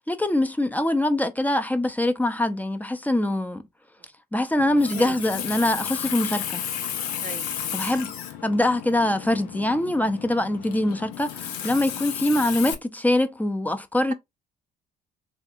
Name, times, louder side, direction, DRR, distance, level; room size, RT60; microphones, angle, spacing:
voice 1, 0.0-3.7 4.3-6.6 7.7-8.1 8.4-14.1, left 1 dB, 10° left, 0.6 m, -23 dB
Water tap faucet, 4.6-12.7, left 9 dB, 75° left, 0.6 m, -33 dB
voice 2, 7.2-7.9, right 8 dB, 40° right, 0.4 m, -39 dB
3.4 x 2.3 x 4.2 m
figure-of-eight pair, 50°, 20 cm